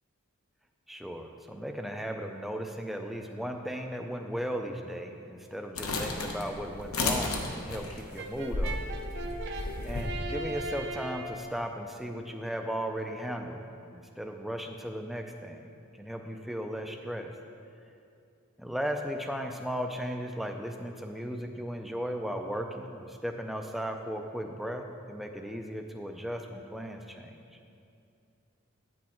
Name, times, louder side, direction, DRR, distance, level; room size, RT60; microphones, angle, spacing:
voice 1, 0.9-8.8 9.8-13.6 13.9-15.7 16.0-17.3 18.6-27.4, equal, ahead, 3 dB, 0.3 m, -36 dB
sound 1, 5.8-10.1, left 2 dB, 80° left, 0.9 m, -33 dB
Brass instrument, 8.2-11.5, right 2 dB, 50° right, 0.6 m, -38 dB
9.0 x 6.3 x 4.3 m, 2.6 s
head